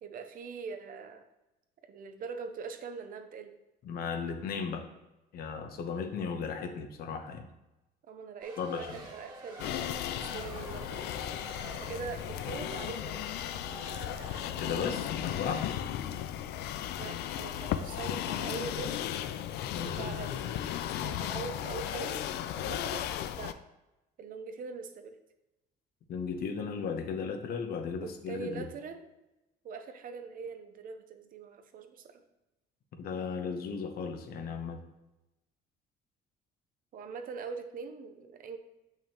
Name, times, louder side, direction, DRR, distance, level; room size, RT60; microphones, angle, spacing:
voice 1, 0.0-1.2 1.9-3.5 8.1-11.3 11.7-13.2 17.0-19.0 19.8-20.6 21.0-22.3 22.6-23.1 23.4-23.6 24.2-25.2 28.0-29.1 29.6-32.2 36.9-38.6, right 5 dB, 55° right, 7 dB, 0.8 m, -42 dB
voice 2, 3.8-4.8 5.3-7.5 8.6-9.0 14.6-15.6 19.7-20.1 26.1-28.6 33.0-34.8, left 5 dB, 65° left, 6 dB, 0.9 m, -36 dB
Race car auto racing, 8.4-15.1, right 2 dB, 25° right, 1.6 m, -48 dB
sound 1, 9.6-23.5, left 11 dB, 80° left, 0.4 m, -35 dB
7.0 x 5.8 x 3.0 m, 0.98 s
cardioid pair, 110°, 17 cm